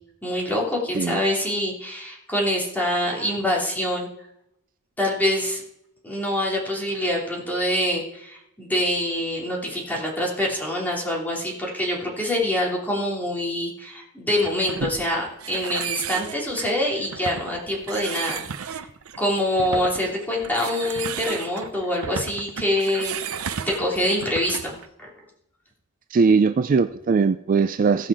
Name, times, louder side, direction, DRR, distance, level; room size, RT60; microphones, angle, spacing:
voice 1, 0.2-4.1 5.0-5.6 6.0-18.7 19.1-23.2 23.6-25.1, left 1 dB, 10° left, -3 dB, 3.0 m, -25 dB
sound 1, 14.4-24.9, right 7 dB, 70° right, 0.7 m, -34 dB
voice 2, 26.1-28.1, right 5 dB, 40° right, 10 dB, 0.3 m, -20 dB
16.5 x 5.7 x 4.9 m, 0.79 s
head